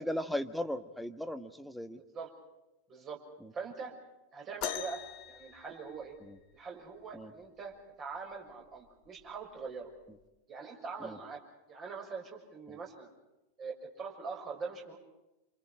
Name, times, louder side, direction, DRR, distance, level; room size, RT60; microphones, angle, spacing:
voice 1, 0.0-2.0 3.4-3.5 6.2-6.4 7.1-7.3 11.0-11.2 12.7-12.8, left 1 dB, ahead, 10 dB, 1.5 m, -37 dB
voice 2, 2.0-2.3 2.9-3.2 3.5-3.9 4.3-5.0 5.3-6.2 6.5-9.9 10.5-11.4 11.7-13.1 13.6-15.0, right 5 dB, 30° right, 1 dB, 6.5 m, -43 dB
sound 1, 4.6-6.5 8.2-8.3 9.1-9.3 10.2-10.3, left 9 dB, 40° left, 1.7 m, -41 dB
28.5 x 28.0 x 4.9 m, 0.94 s
figure-of-eight pair, 90°, 0 cm